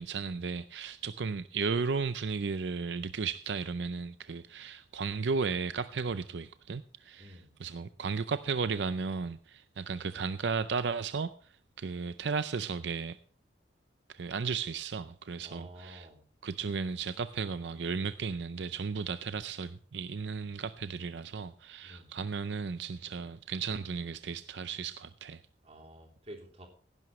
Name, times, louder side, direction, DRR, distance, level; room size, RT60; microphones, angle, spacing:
voice 1, 0.0-11.3 11.8-13.2 14.1-16.1 16.4-25.4, right 5 dB, 80° right, 0.5 m, -34 dB
voice 2, 7.2-7.5 15.4-16.2 21.8-22.1 25.6-26.7, right 1 dB, 35° right, 3.3 m, -50 dB
17.0 x 11.0 x 3.2 m
head